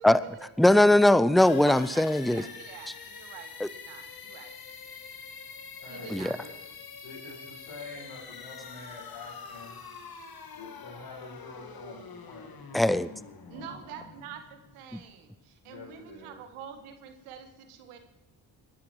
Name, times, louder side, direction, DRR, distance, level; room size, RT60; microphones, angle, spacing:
voice 1, 0.0-0.7 1.7-4.5 5.9-6.4 13.5-18.0, right 8 dB, 85° right, 7 dB, 1.8 m, -46 dB
voice 2, 0.6-2.4 6.1-6.4 12.7-13.1 14.9-15.0, left 1 dB, ahead, 16 dB, 0.7 m, -20 dB
sound 1, 1.4-15.1, left 5 dB, 45° left, 2.0 m, -46 dB
voice 3, 5.8-6.5 7.0-9.8 10.5-12.5 13.4-14.1 15.6-16.4, left 3 dB, 65° left, -8 dB, 6.3 m, -46 dB
20.0 x 12.0 x 4.8 m, 0.98 s
hypercardioid pair, 40°, 49 cm